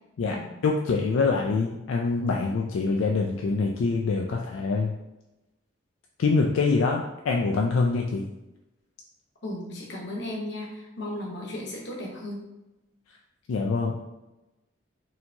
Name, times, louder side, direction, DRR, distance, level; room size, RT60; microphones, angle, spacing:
voice 1, 0.6-5.0 6.2-8.3 13.5-14.1, left 4 dB, 80° left, 0 dB, 0.4 m, -25 dB
voice 2, 9.4-12.5, left 1 dB, 60° left, -2 dB, 1.0 m, -35 dB
4.3 x 2.8 x 2.8 m, 0.98 s
head